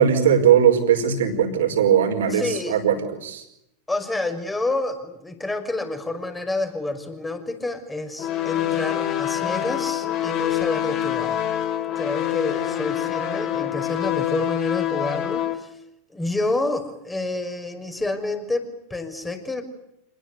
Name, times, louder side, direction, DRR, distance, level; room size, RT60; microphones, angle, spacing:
voice 1, 0.0-2.9 3.2-3.4, right 8 dB, 70° right, 7 dB, 5.2 m, -19 dB
voice 2, 2.3-2.8 3.9-11.4 12.0-15.7 16.1-19.6, left 2 dB, 10° left, 7 dB, 5.8 m, -28 dB
sound 1, 8.2-15.5, left 12 dB, 40° left, 3.4 m, -26 dB
27.5 x 21.0 x 8.4 m, 0.83 s
hypercardioid pair, 90°, 0 cm